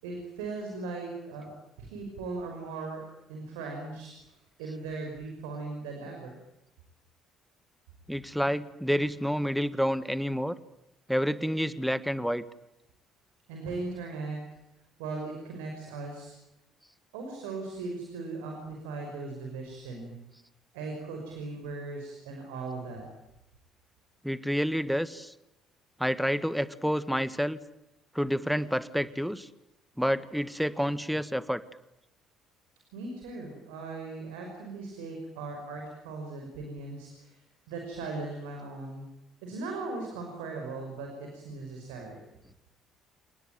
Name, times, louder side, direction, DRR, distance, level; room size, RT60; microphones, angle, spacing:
voice 1, 0.0-3.0 3.3-6.4 13.5-14.4 15.0-16.3 17.1-20.1 20.7-23.0 32.9-37.4 37.7-39.0 39.4-42.2, right 3 dB, 75° right, 2 dB, 5.8 m, -38 dB
voice 2, 8.1-10.6 11.1-12.4 24.2-25.3 26.0-27.6 28.1-29.5 30.0-31.6, equal, ahead, 14 dB, 1.6 m, -29 dB
29.0 x 19.5 x 9.3 m, 0.89 s
hypercardioid pair, 55°, 0 cm